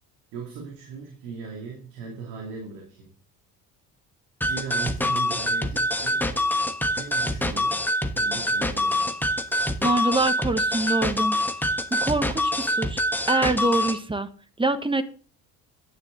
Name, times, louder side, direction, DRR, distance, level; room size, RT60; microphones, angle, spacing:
voice 1, 0.3-3.1 4.4-6.3 6.9-7.8 8.1-9.2, right 5 dB, 70° right, 1 dB, 2.6 m, -38 dB
sound 1, 4.4-14.0, left 1 dB, 5° left, 1.3 m, -25 dB
voice 2, 9.8-11.4 11.9-13.0 13.3-14.3 14.6-15.0, right 2 dB, 10° right, 10 dB, 1.3 m, -25 dB
9.9 x 9.7 x 3.9 m, 0.40 s
hypercardioid pair, 60°, 44 cm